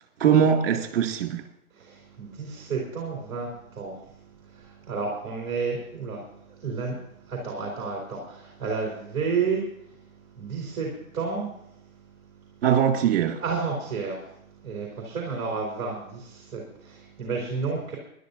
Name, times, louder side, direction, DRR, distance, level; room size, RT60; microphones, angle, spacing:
voice 1, 0.2-1.4 12.6-13.4, right 8 dB, 40° right, 2.2 m, -21 dB
voice 2, 1.7-4.0 4.5-7.0 7.3-9.6 10.4-11.5 13.4-14.3 14.6-17.9, right 5 dB, 15° right, 2.6 m, -31 dB
26.0 x 11.5 x 2.6 m
hypercardioid pair, 155°, 43 cm